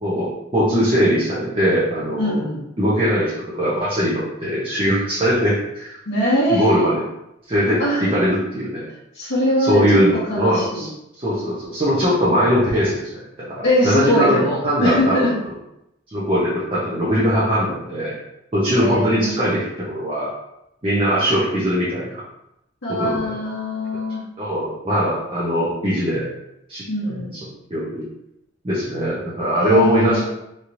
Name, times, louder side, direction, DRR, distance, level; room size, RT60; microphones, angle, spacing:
voice 1, 0.0-2.4 2.8-3.3 3.6-6.0 6.5-7.0 7.5-8.8 9.6-10.9 11.2-14.4 14.6-15.3 16.1-18.1 18.5-20.3 20.8-22.2 23.0-23.2 24.4-26.2 26.7-27.4 27.7-28.0 28.6-30.2, equal, 30° right, -8 dB, 0.7 m, -20 dB
voice 2, 2.2-2.7 6.1-6.9 7.8-8.0 9.1-9.8 10.3-10.9 13.6-15.4 18.7-19.5 22.8-24.2 26.9-27.4 29.6-30.2, equal, 80° left, -9 dB, 1.0 m, -22 dB
3.2 x 2.9 x 2.5 m, 0.85 s
head